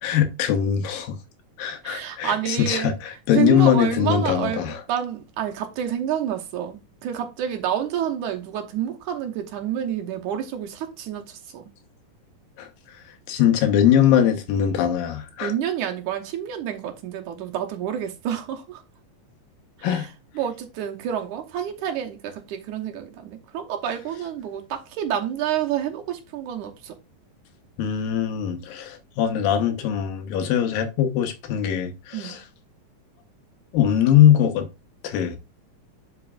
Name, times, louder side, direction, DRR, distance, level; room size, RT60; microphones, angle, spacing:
voice 1, 0.0-1.2 1.6-4.8 12.6-12.7 13.3-15.5 19.8-20.1 27.8-32.4 33.7-34.7 35.0-35.4, left 9 dB, 90° left, 2.8 m, -21 dB
voice 2, 1.8-2.9 3.4-11.7 15.4-18.8 19.8-20.1 20.4-26.9 32.1-32.4, right 9 dB, 70° right, 2.3 m, -29 dB
11.0 x 5.9 x 2.4 m
omnidirectional pair, 3.9 m